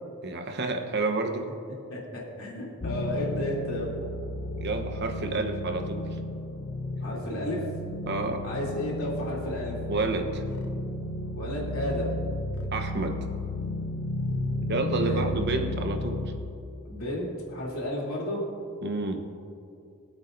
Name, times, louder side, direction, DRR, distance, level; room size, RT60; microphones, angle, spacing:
voice 1, 0.2-1.5 4.5-6.2 8.1-8.4 9.9-10.4 12.7-13.2 14.7-16.2 18.8-19.3, right 3 dB, 50° right, 5 dB, 1.0 m, -29 dB
voice 2, 1.9-3.9 7.0-7.6 8.4-9.8 11.3-12.2 15.0-15.2 16.8-18.4, left 1 dB, 70° left, -5 dB, 3.2 m, -32 dB
sound 1, 2.8-16.4, left 1 dB, 50° left, 0.7 m, -33 dB
24.0 x 8.1 x 2.7 m, 2.6 s
head